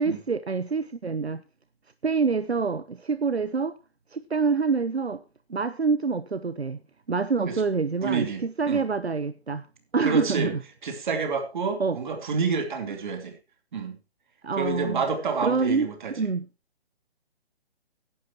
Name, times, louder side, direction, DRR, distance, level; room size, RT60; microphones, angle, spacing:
voice 1, 0.0-1.4 2.0-3.8 4.1-5.2 5.5-6.8 7.1-9.6 9.9-10.6 11.8-12.0 14.4-15.0 15.4-16.5, right 4 dB, 80° right, 14 dB, 1.1 m, -26 dB
voice 2, 8.0-8.9 10.0-10.5 10.8-13.4 13.7-14.0 14.5-16.1, right 5 dB, 50° right, 5 dB, 3.7 m, -28 dB
15.5 x 11.5 x 3.0 m, 0.30 s
figure-of-eight pair, 135°, 32 cm